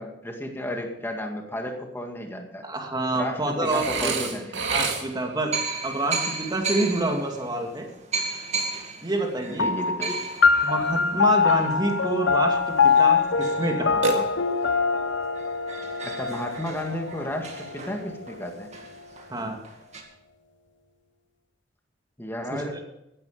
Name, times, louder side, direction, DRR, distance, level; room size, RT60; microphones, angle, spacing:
voice 1, 0.0-2.6 3.1-4.6 9.6-10.2 16.0-18.7 22.2-22.7, left 1 dB, 15° left, 3 dB, 2.1 m, -33 dB
voice 2, 2.6-4.4 4.6-5.6 5.8-7.9 9.0-9.7 10.6-14.3 19.3-19.6 22.5-22.8, right 2 dB, 25° right, 2 dB, 2.4 m, -28 dB
Burping eructation, 3.6-5.4 14.0-14.8, right 3 dB, 85° right, 2.3 m, -28 dB
sound 1, 5.5-14.7 15.1-15.2 15.3-20.0, right 4 dB, 40° right, 2.1 m, -36 dB
sound 2, 9.6-18.4, left 5 dB, 85° left, 0.8 m, -24 dB
15.0 x 11.0 x 5.1 m, 0.85 s
head